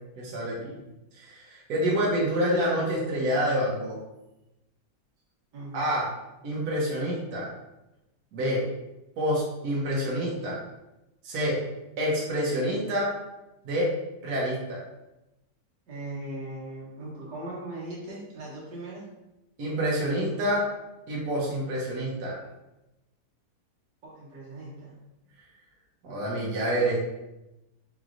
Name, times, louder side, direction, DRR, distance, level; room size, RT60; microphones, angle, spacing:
voice 1, 0.2-0.8 1.2-4.0 5.7-6.1 6.4-7.5 8.3-8.6 9.2-10.6 11.2-11.6 12.0-13.1 13.6-13.9 14.2-14.8 19.6-20.7 21.1-22.4 26.0-27.0, equal, 65° right, -5 dB, 1.5 m, -27 dB
voice 2, 5.5-6.0 15.9-19.1 24.0-25.0, right 1 dB, 85° right, -6 dB, 1.8 m, -39 dB
4.5 x 3.1 x 2.5 m, 0.96 s
omnidirectional pair, 1.8 m